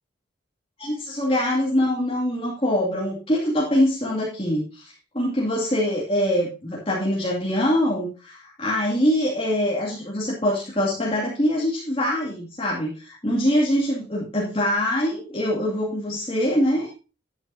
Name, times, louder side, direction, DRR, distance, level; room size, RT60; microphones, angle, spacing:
voice 1, 0.8-16.9, equal, 30° left, -5 dB, 2.5 m, -24 dB
12.0 x 9.2 x 2.8 m, 0.31 s
head